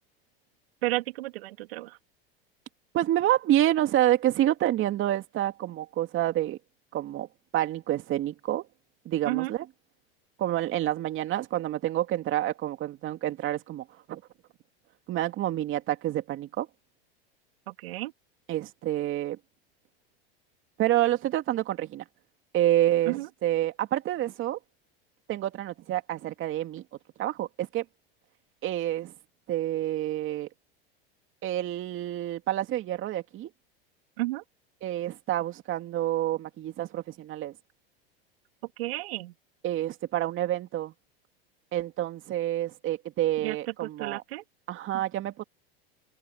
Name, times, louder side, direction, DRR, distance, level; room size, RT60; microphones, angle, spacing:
voice 1, 0.8-2.0 9.3-9.5 17.7-18.1 23.1-23.3 34.2-34.4 38.8-39.3 43.4-44.4, right 19 dB, 75° right, 2.7 m, -32 dB
voice 2, 2.9-6.6 6.9-7.3 7.5-8.6 9.1-9.7 10.4-14.2 15.1-16.7 18.5-19.4 20.8-22.0 22.5-24.6 25.3-26.8 27.2-27.8 28.6-29.1 29.5-30.5 31.4-33.5 34.8-37.5 39.6-40.9 41.7-44.2 44.7-45.4, right 13 dB, 40° right, 2.5 m, -28 dB
hypercardioid pair, 105°, 30 cm